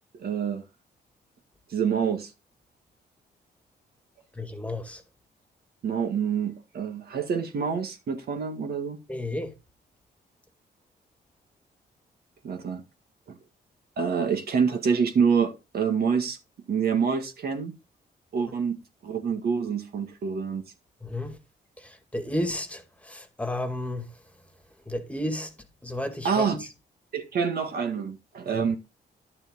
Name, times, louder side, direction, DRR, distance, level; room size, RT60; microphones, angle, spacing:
voice 1, 0.2-0.6 1.7-2.3 5.8-9.0 12.4-12.8 14.0-16.4 16.7-17.7 18.3-20.6 26.2-26.6 27.1-28.8, right 6 dB, 65° right, 1.8 m, -26 dB
voice 2, 4.4-5.0 9.1-9.5 21.0-21.4 21.8-24.1 24.9-25.5 25.8-26.6 28.5-28.7, left 1 dB, 10° left, 1.9 m, -32 dB
11.0 x 6.9 x 3.8 m
cardioid pair, 85°, 17 cm